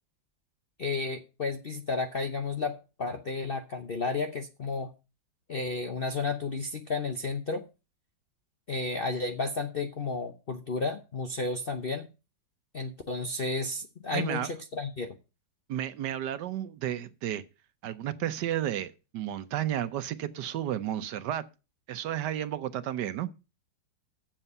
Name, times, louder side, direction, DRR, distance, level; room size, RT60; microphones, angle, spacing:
voice 1, 0.8-4.9 5.5-7.6 8.7-12.1 12.7-15.2, left 3 dB, 50° left, 0.6 m, -32 dB
voice 2, 14.1-14.5 15.7-17.4 17.8-21.4 21.9-23.3, right 11 dB, 70° right, 1.3 m, -32 dB
8.9 x 7.4 x 5.4 m
omnidirectional pair, 2.0 m